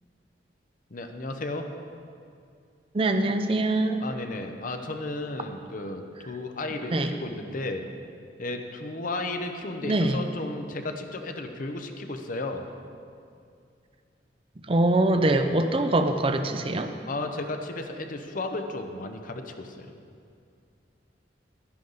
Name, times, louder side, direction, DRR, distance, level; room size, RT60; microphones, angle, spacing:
voice 1, 0.9-1.7 4.0-7.8 8.4-12.6 17.0-19.9, left 2 dB, 50° left, 5 dB, 0.8 m, -34 dB
voice 2, 2.9-4.0 6.9-7.1 9.8-10.2 14.7-16.9, right 2 dB, 30° right, 7 dB, 0.5 m, -23 dB
11.0 x 10.5 x 4.0 m, 2.4 s
head